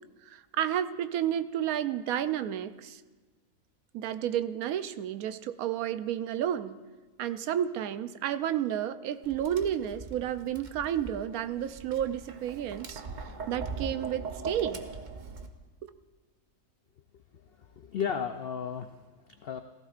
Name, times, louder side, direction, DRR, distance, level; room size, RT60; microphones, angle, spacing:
voice 1, 0.3-3.0 3.9-6.8 7.2-13.0 13.5-14.9, right 10 dB, 75° right, 12 dB, 1.0 m, -31 dB
Tap, 9.2-15.5, right 4 dB, 45° right, 0.7 m, -40 dB
voice 2, 17.6-19.6, left 7 dB, 75° left, 7 dB, 0.5 m, -35 dB
17.5 x 15.0 x 2.5 m, 1.3 s
omnidirectional pair, 1.6 m